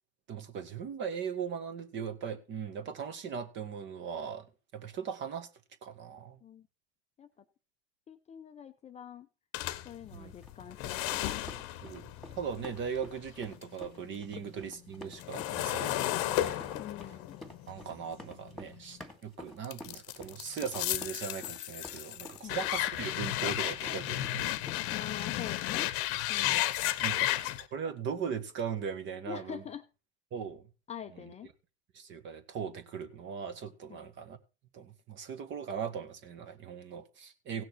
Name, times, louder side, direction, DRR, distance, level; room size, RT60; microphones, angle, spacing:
voice 1, 0.3-4.4 4.7-5.5 5.8-6.4 10.1-10.3 11.8-12.1 12.3-16.6 17.7-24.5 27.0-29.6 30.3-30.6 31.9-34.4 34.7-37.6, right 7 dB, 35° right, 1.7 m, -39 dB
voice 2, 8.1-9.3 9.8-11.6 16.8-17.4 22.4-22.6 24.9-25.9 26.3-26.7 27.4-27.5 29.3-29.8 30.9-31.5 33.9-34.1, left 8 dB, 20° left, 0.7 m, -45 dB
sound 1, 9.5-13.8 14.1-19.1 19.6-27.6, left 14 dB, 45° left, 1.1 m, -34 dB
sound 2, 10.4-25.0, left 1 dB, ahead, 2.5 m, -51 dB
17.0 x 6.4 x 4.5 m
hypercardioid pair, 105°, 33 cm